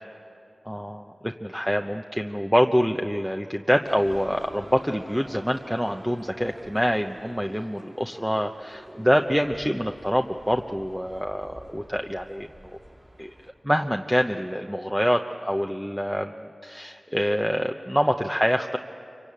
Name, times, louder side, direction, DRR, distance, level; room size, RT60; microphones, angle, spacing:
voice 1, 0.6-12.8 13.2-13.3 13.6-16.4 16.6-18.8, equal, 5° right, 4 dB, 0.9 m, -25 dB
sound 1, 3.8-13.5, right 1 dB, 40° right, 4.6 m, -48 dB
26.0 x 24.0 x 8.7 m, 2.6 s
cardioid pair, 45°, 0 cm